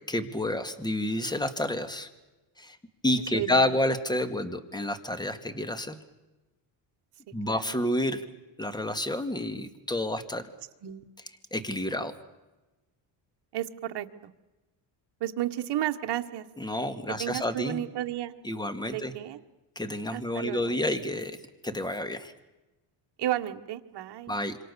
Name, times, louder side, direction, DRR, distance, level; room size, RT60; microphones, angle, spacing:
voice 1, 0.1-2.1 2.6-2.8 3.0-6.0 7.3-8.2 8.6-10.4 11.5-12.1 16.6-17.8 18.4-19.1 19.8-21.4 21.6-22.3 24.3-24.6, left 1 dB, 10° left, 11 dB, 2.1 m, -29 dB
voice 2, 3.3-3.7 7.3-7.8 10.8-11.1 13.5-14.3 15.2-16.4 17.2-18.3 18.9-19.4 20.1-20.8 23.2-24.3, right 13 dB, 60° right, 6 dB, 1.6 m, -33 dB
27.5 x 24.0 x 7.0 m, 1.1 s
cardioid pair, 105°, 46 cm